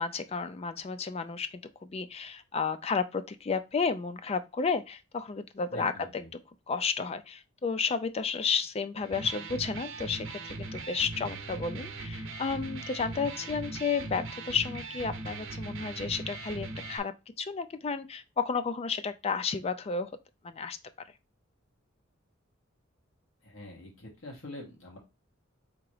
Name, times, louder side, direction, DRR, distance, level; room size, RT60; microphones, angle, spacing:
voice 1, 0.0-6.2 6.7-20.1 20.4-20.8, left 5 dB, 30° left, 0.4 m, -32 dB
voice 2, 5.7-6.3 23.4-25.0, left 1 dB, 75° left, 1.9 m, -45 dB
Electric guitar, 9.0-17.0, right 3 dB, 70° right, 0.9 m, -39 dB
3.7 x 2.9 x 4.8 m
head